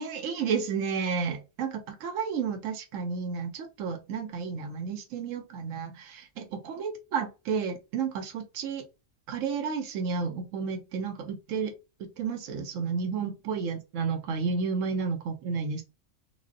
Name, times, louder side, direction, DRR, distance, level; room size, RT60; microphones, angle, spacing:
voice 1, 0.0-8.8 9.3-11.7 12.2-15.8, right 5 dB, 90° right, 1.0 m, -31 dB
3.5 x 2.0 x 2.5 m
omnidirectional pair, 1.3 m